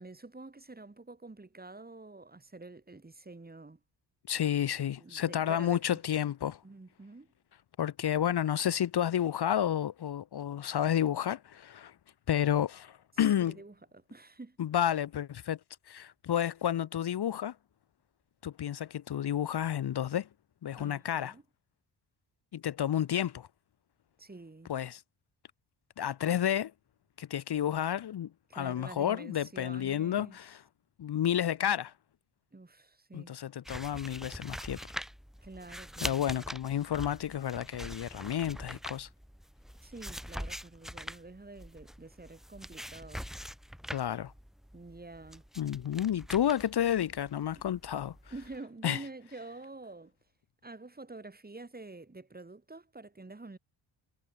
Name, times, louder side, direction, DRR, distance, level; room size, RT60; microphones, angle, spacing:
voice 1, 0.0-3.8 5.0-6.0 6.6-7.3 13.3-14.7 20.8-21.4 24.2-24.7 28.5-30.4 32.5-33.3 35.4-36.5 39.8-43.3 44.7-45.4 47.6-47.7 48.3-50.2 50.6-53.6, right 3 dB, 20° right, 3.8 m, -48 dB
voice 2, 4.3-6.6 7.8-11.9 12.3-13.6 14.6-15.6 15.9-17.5 18.4-20.3 20.6-21.3 22.5-23.5 24.7-25.0 26.0-26.7 27.2-30.6 31.0-31.9 33.1-34.9 36.0-39.1 43.9-44.3 45.6-48.1 48.8-49.0, left 10 dB, 60° left, 1.2 m, -31 dB
sound 1, 33.6-48.6, equal, ahead, 2.7 m, -44 dB
cardioid pair, 70°, 45 cm